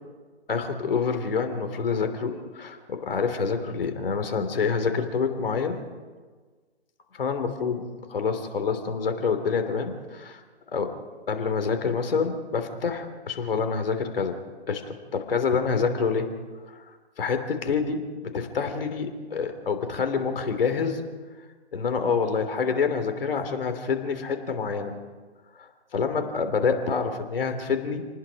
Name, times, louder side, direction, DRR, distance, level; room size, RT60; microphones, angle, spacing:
voice 1, 0.5-5.9 7.1-10.4 10.7-11.0 11.3-14.4 14.7-16.3 16.7-16.8 17.2-21.0 21.7-24.9 25.6-28.1, left 5 dB, 55° left, 7 dB, 3.1 m, -27 dB
28.5 x 19.5 x 5.2 m, 1.5 s
figure-of-eight pair, 140°, 33 cm